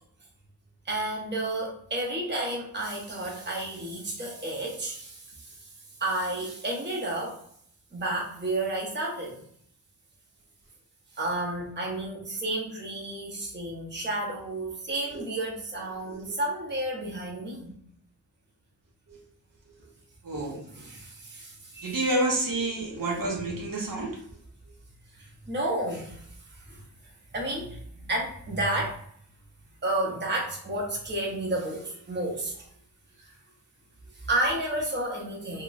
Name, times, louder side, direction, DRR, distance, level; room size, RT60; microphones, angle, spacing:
voice 1, 0.8-5.7 6.0-7.4 7.9-9.4 11.1-17.8 20.7-22.0 22.9-23.0 25.1-26.2 26.5-26.8 27.3-29.0 29.8-32.7 33.2-33.3 34.1-35.6, right 1 dB, 30° right, -2 dB, 0.8 m, -31 dB
voice 2, 20.2-20.6 21.8-24.2, right 2 dB, 60° right, -1 dB, 0.7 m, -29 dB
3.0 x 2.9 x 2.5 m, 0.65 s
wide cardioid pair, 160°, 38 cm